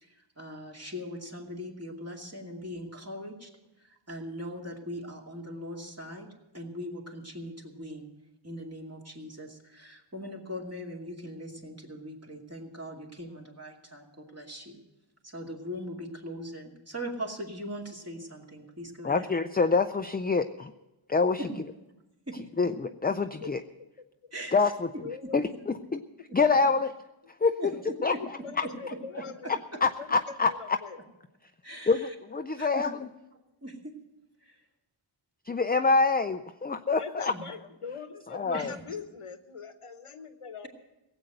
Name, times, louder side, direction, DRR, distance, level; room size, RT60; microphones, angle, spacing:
voice 1, 0.0-3.5 3.8-6.3 6.5-8.1 8.4-14.8 15.2-19.3 21.4-21.5 22.3-22.4 24.3-24.6 25.2-25.3 26.3-26.4 27.6-28.2 28.6-29.8 31.6-32.0 32.6-32.8 33.6-33.9 34.4-34.5 37.3-37.4 38.5-38.7, equal, 30° right, -1 dB, 2.6 m, -40 dB
voice 2, 19.0-20.7 21.1-21.5 22.6-23.6 24.5-25.1 25.3-26.0 26.3-26.9 27.4-27.6 28.0-28.7 29.8-30.8 31.9-33.1 35.5-37.3 38.3-38.7, left 4 dB, 20° left, 8 dB, 0.4 m, -26 dB
voice 3, 25.0-25.4 28.2-31.0 37.0-40.7, left 6 dB, 90° left, 9 dB, 1.1 m, -42 dB
17.0 x 8.1 x 7.7 m, 0.97 s
wide cardioid pair, 60°, 50 cm